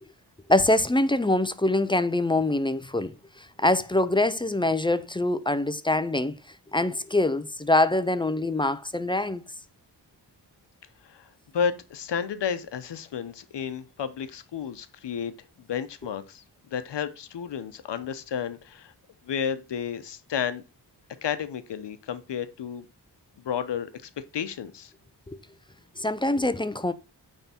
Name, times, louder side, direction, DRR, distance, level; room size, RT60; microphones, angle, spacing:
voice 1, 0.5-9.4 25.3-25.4 26.0-26.9, left 2 dB, 15° left, 0.3 m, -24 dB
voice 2, 11.5-15.3 15.6-18.9 19.2-20.6 21.2-22.9 23.4-24.9, left 7 dB, 80° left, 0.8 m, -32 dB
9.0 x 3.6 x 4.3 m
wide cardioid pair, 130°, 42 cm